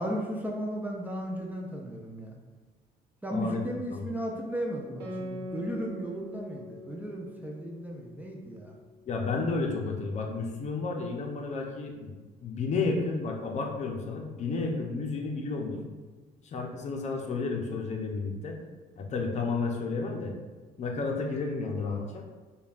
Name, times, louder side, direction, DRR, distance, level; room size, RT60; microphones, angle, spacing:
voice 1, 0.0-2.4 3.2-8.8, equal, 10° right, -1 dB, 0.4 m, -35 dB
Guitar, 5.0-9.9, left 2 dB, 90° right, 0.7 m, -43 dB
voice 2, 9.1-12.1 12.4-15.8 16.4-18.6 19.0-20.3 20.8-22.3, left 4 dB, 45° left, 1 dB, 0.6 m, -32 dB
5.2 x 2.3 x 2.4 m, 1.3 s
cardioid pair, 110°, 17 cm